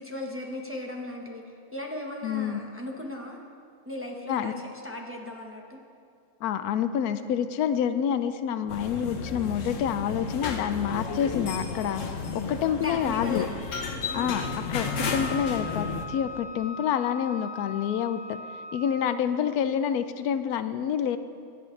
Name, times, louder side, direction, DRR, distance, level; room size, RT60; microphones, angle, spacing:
voice 1, 0.0-1.4 1.7-3.4 3.8-5.8 12.8-13.5 14.1-14.3, left 2 dB, 10° right, -1 dB, 1.1 m, -36 dB
voice 2, 2.2-2.6 4.3-4.5 6.4-12.0 12.3-13.5 14.1-18.4 18.7-21.2, left 8 dB, 90° left, 11 dB, 1.1 m, -28 dB
sound 1, 8.7-16.0, left 4 dB, 60° left, 1.2 m, -33 dB
Wind instrument woodwind instrument, 14.1-19.3, left 4 dB, 75° right, 2.7 m, -40 dB
22.5 x 9.0 x 3.3 m, 2.3 s
omnidirectional pair, 1.5 m